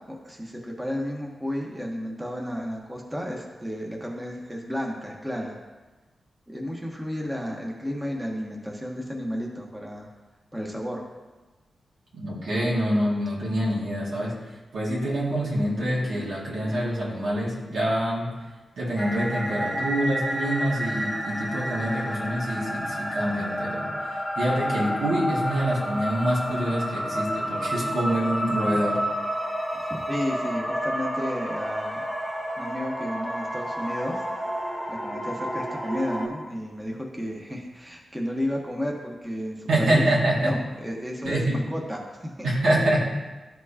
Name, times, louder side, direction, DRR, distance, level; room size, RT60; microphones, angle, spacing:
voice 1, 0.1-5.5 6.5-10.1 10.5-11.0 29.8-32.0 32.6-34.2 34.9-40.1 40.4-42.5, equal, 10° right, -1 dB, 1.2 m, -32 dB
voice 2, 12.1-14.4 14.7-18.3 18.8-29.0 39.7-40.6 41.2-41.6 42.4-43.0, right 1 dB, 80° right, -6 dB, 2.3 m, -26 dB
sound 1, 19.0-36.3, equal, 5° left, 1.5 m, -30 dB
12.5 x 4.5 x 2.9 m, 1.2 s
cardioid pair, 75°, 0 cm